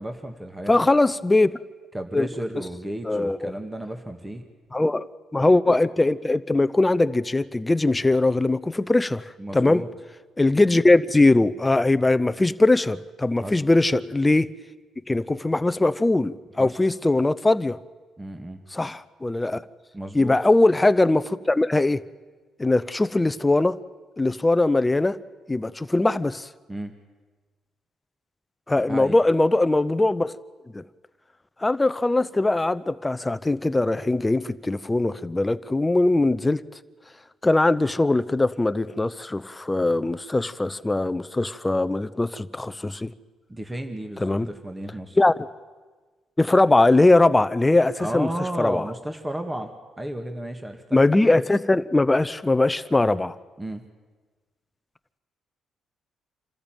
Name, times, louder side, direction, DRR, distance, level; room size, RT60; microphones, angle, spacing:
voice 1, 0.0-0.8 1.9-4.5 9.4-9.9 13.4-13.6 16.6-16.8 18.2-18.6 19.9-20.4 26.7-26.9 28.9-29.2 43.5-45.2 48.0-51.0 53.6-53.8, right 1 dB, 15° right, 6 dB, 1.9 m, -33 dB
voice 2, 0.7-1.5 2.1-2.3 3.0-3.5 4.7-5.1 5.3-9.8 10.4-14.5 15.1-17.8 18.7-19.6 20.1-22.0 22.6-23.7 24.2-25.2 25.5-26.5 28.7-30.3 30.7-30.8 31.6-36.6 37.4-43.1 44.2-44.5 45.2-45.3 46.4-48.3 48.6-48.9 50.9-53.4, left 2 dB, 15° left, 14 dB, 0.8 m, -21 dB
27.0 x 13.5 x 9.2 m, 1.3 s
cardioid pair, 75°, 0 cm